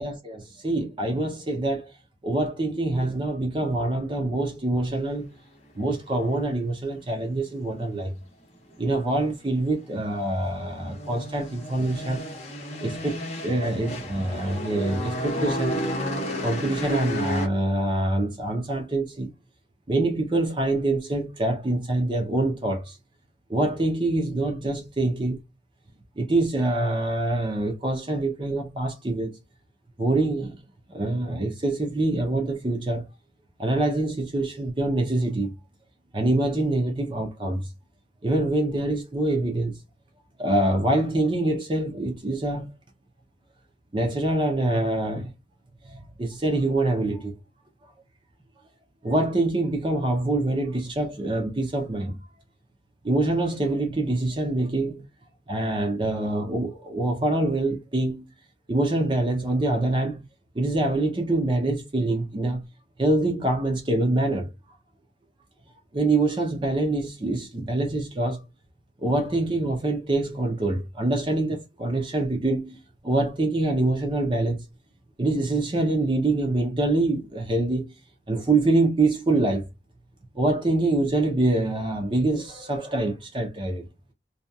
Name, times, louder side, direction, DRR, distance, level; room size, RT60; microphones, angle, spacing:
voice 1, 0.0-1.9 2.2-5.3 5.8-8.1 8.8-12.2 12.8-15.8 16.4-19.3 19.9-23.0 23.5-25.4 26.2-29.3 30.0-30.6 30.9-33.0 33.6-35.5 36.1-37.6 38.2-39.8 40.4-42.7 43.9-45.3 45.9-47.3 49.0-52.2 53.0-55.1 55.5-58.3 58.7-60.2 60.6-62.6 63.0-64.5 65.9-68.4 69.0-72.8 73.0-74.6 75.2-77.9 78.3-79.7 80.4-83.8, right 2 dB, 30° right, 0.6 m, -25 dB
sound 1, 9.9-17.5, equal, 40° left, 0.7 m, -32 dB
2.7 x 2.4 x 2.3 m
head